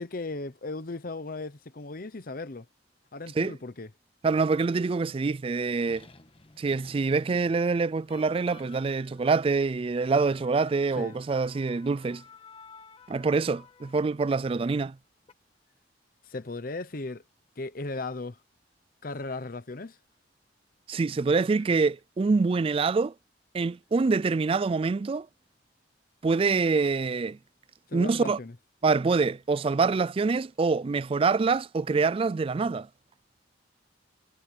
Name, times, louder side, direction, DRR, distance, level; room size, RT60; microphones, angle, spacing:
voice 1, 0.0-2.7 3.1-3.9 11.0-11.1 16.2-17.2 17.6-18.4 19.0-20.0 27.9-28.5, left 3 dB, 50° left, 0.9 m, -36 dB
voice 2, 4.2-6.1 6.6-12.2 13.1-15.0 20.9-23.1 23.5-25.3 26.2-27.4 27.9-28.4 28.8-32.9, right 4 dB, 30° right, 0.3 m, -25 dB
sound 1, 5.8-14.3 15.0-15.3, left 4 dB, 30° left, 1.4 m, -54 dB
head